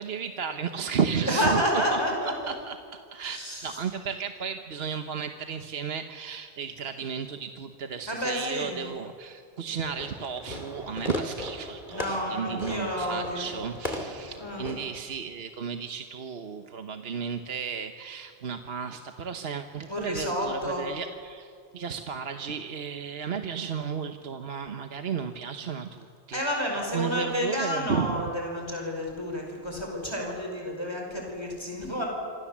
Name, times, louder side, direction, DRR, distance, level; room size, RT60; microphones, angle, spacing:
voice 1, 0.0-1.6 1.9-2.0 2.5-26.6 26.9-28.2, right 6 dB, 65° right, 6 dB, 1.3 m, -33 dB
voice 2, 1.1-2.3 3.2-3.8 8.1-8.9 11.9-13.5 14.4-14.7 19.9-20.8 26.3-32.1, equal, 25° left, 0 dB, 4.9 m, -30 dB
Fireworks, 9.8-15.0, left 1 dB, 45° left, 2.7 m, -37 dB
27.0 x 26.0 x 7.4 m, 2.2 s
omnidirectional pair, 1.1 m